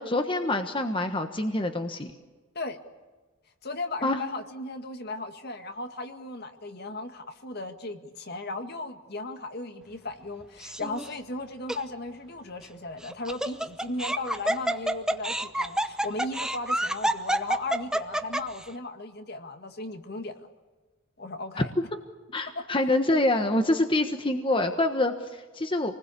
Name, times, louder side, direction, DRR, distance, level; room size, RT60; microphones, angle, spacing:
voice 1, 0.0-2.1 4.0-4.2 22.3-26.0, left 2 dB, 25° left, 6 dB, 1.3 m, -26 dB
voice 2, 3.6-20.5 21.2-21.7 22.6-22.7, left 2 dB, 50° left, 6 dB, 1.9 m, -36 dB
Laughter, 10.6-11.1 11.7-11.8 13.0-18.6, right 1 dB, 5° right, 0.8 m, -28 dB
28.0 x 20.5 x 8.4 m, 1.3 s
head